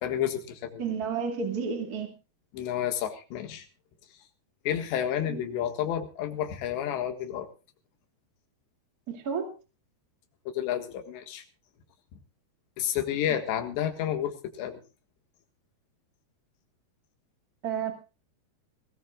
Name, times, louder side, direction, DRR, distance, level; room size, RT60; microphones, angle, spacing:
voice 1, 0.0-0.8 2.5-3.7 4.7-7.5 10.5-11.4 12.1-12.2 12.8-14.8, left 10 dB, 85° left, 6 dB, 3.9 m, -30 dB
voice 2, 0.8-2.1 5.3-5.4 9.1-9.5 17.6-17.9, right 6 dB, 30° right, 4 dB, 2.1 m, -31 dB
22.5 x 17.0 x 2.4 m, 0.32 s
omnidirectional pair, 4.9 m